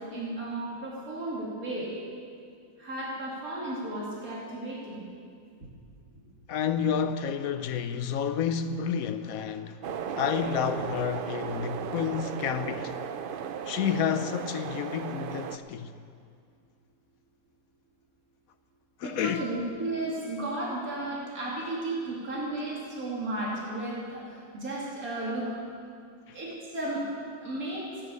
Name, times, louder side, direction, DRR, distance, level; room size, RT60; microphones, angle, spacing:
voice 1, 0.0-1.9 2.8-5.0 19.0-24.2 24.5-25.5 26.3-27.0 27.4-27.9, right 2 dB, 65° right, 3.2 m, -34 dB
voice 2, 6.5-9.9 10.2-13.0 13.7-16.0 19.0-19.5 26.3-26.4, left 7 dB, 70° left, 1.1 m, -30 dB
sound 1, 9.8-15.6, right 7 dB, 85° right, 0.4 m, -36 dB
15.5 x 8.7 x 8.4 m
omnidirectional pair, 1.6 m